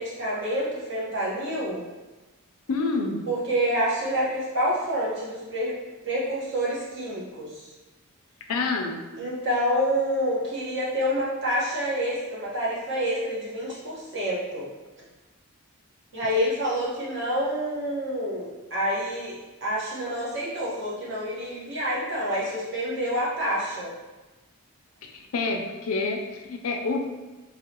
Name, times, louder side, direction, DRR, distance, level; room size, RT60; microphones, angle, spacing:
voice 1, 0.0-1.8 3.3-5.8 6.0-7.7 9.2-14.7 16.1-23.9, equal, 50° right, -6 dB, 1.1 m, -28 dB
voice 2, 2.7-3.2 8.5-9.0 25.1-27.1, left 3 dB, 75° left, 3 dB, 0.5 m, -28 dB
3.8 x 2.8 x 2.8 m, 1.2 s
head